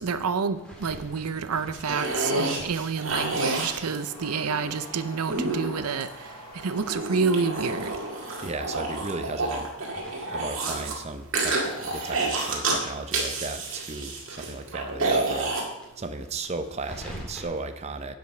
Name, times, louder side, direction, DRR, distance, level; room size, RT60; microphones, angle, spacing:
voice 1, 0.0-6.1 6.6-7.9, right 5 dB, 85° right, 11 dB, 0.6 m, -28 dB
sound 1, 0.5-4.4 4.7-7.7 8.0-8.1 8.4-8.5 8.9-11.2 11.5-14.6 14.9-15.0 15.2-15.3 15.7-17.4, equal, 5° left, 2.0 m, -47 dB
sound 2, 1.7-4.7 5.3-6.3 6.8-10.9 11.3-12.8 13.1-15.6, right 2 dB, 60° right, 1.9 m, -29 dB
sound 3, 2.6-9.7, left 1 dB, 20° left, 1.8 m, -46 dB
voice 2, 8.4-9.7 10.3-15.5 16.0-18.2, right 3 dB, 30° right, 8 dB, 0.5 m, -35 dB
10.5 x 5.2 x 6.6 m, 0.94 s
head